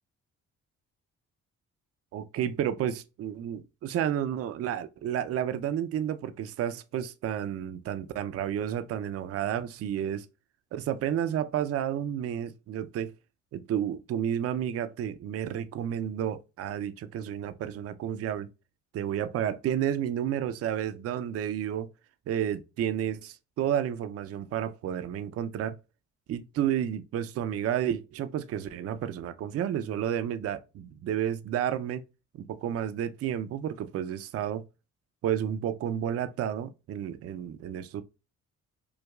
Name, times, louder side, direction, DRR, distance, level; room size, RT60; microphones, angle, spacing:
voice 1, 2.1-10.3 10.7-13.1 13.5-18.5 18.9-21.9 22.3-25.8 26.3-32.0 32.4-34.6 35.2-38.0, right 10 dB, 50° right, 0.4 m, -31 dB
4.7 x 2.2 x 2.2 m
cardioid pair, 90°, 30 cm